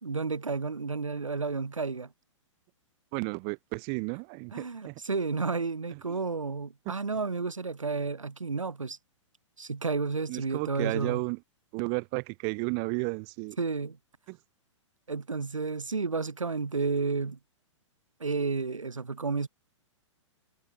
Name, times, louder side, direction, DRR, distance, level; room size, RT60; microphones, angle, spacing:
voice 1, 0.0-2.1 4.5-9.0 9.6-11.2 13.6-14.0 15.1-17.4 18.2-19.5, right 4 dB, 85° right, 3.2 m, -31 dB
voice 2, 3.1-5.0 5.9-6.2 6.9-7.0 10.3-11.4 11.7-13.6 14.3-14.4, right 40 dB or more, 40° right, 2.7 m, -33 dB
figure-of-eight pair, 115°, 16 cm